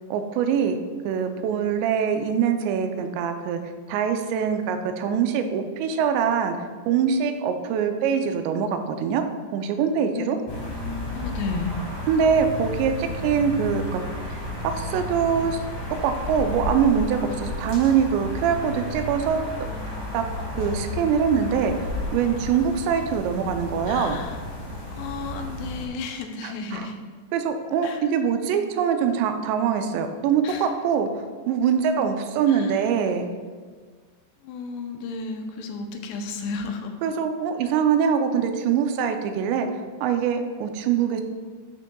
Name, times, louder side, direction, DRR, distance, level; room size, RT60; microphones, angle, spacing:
voice 1, 0.1-0.8 1.1-3.6 3.9-6.5 6.9-9.2 9.5-10.4 12.1-14.0 14.3-14.4 14.6-15.6 16.0-19.4 20.1-20.2 20.6-21.7 22.1-24.2 26.4-26.9 27.3-33.3 37.0-39.7 40.0-41.2, right 7 dB, 85° right, 7 dB, 2.8 m, -23 dB
sound 1, 10.5-25.9, left 1 dB, 55° left, 2.5 m, -32 dB
voice 2, 11.1-11.8 23.9-24.4 25.0-27.0 27.8-28.0 30.4-30.7 32.5-32.8 34.4-37.0 37.6-37.7, left 4 dB, 80° left, 4 dB, 2.8 m, -33 dB
12.0 x 6.3 x 2.3 m, 1.5 s
omnidirectional pair, 4.9 m